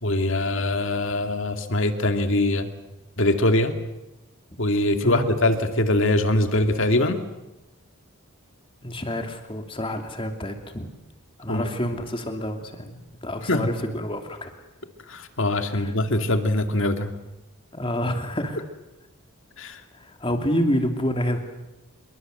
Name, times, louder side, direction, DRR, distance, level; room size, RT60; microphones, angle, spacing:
voice 1, 0.0-2.7 3.2-3.7 4.6-7.2 11.5-11.7 13.5-13.7 15.1-17.1 19.6-19.8, left 1 dB, 60° left, 7 dB, 2.4 m, -22 dB
voice 2, 8.8-10.9 11.4-14.5 15.7-15.9 17.7-18.6 19.9-21.4, equal, 25° left, 5 dB, 2.9 m, -28 dB
26.5 x 23.0 x 7.9 m, 0.99 s
head